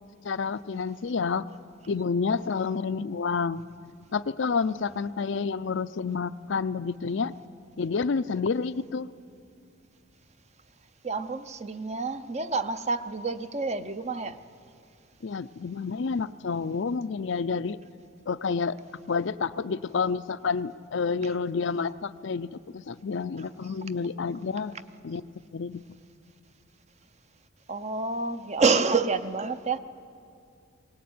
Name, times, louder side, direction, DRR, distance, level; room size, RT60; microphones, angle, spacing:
voice 1, 0.2-1.5 1.9-3.6 4.1-7.4 7.8-9.1 15.2-17.8 18.3-18.8 19.1-24.7 25.0-25.2 25.5-25.8, left 5 dB, 60° left, 14 dB, 0.5 m, -29 dB
voice 2, 11.0-14.4 27.7-29.8, right 4 dB, 30° right, 11 dB, 0.6 m, -28 dB
22.0 x 18.0 x 9.4 m, 2.4 s
head